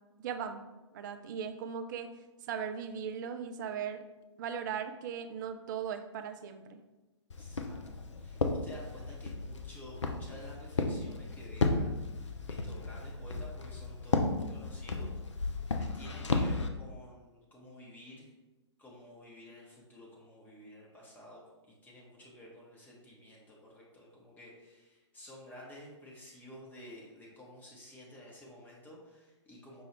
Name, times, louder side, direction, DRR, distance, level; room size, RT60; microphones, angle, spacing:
voice 1, 0.2-0.6 0.9-2.1 2.5-4.0 4.4-6.8, right 7 dB, 40° right, 8 dB, 0.3 m, -38 dB
Walk footsteps, 7.3-16.7, left 3 dB, 80° left, 0.4 m, -34 dB
voice 2, 7.3-18.3 18.8-29.8, equal, 10° left, -4 dB, 0.8 m, -52 dB
5.2 x 2.3 x 3.1 m, 1.1 s
figure-of-eight pair, 115°, 15 cm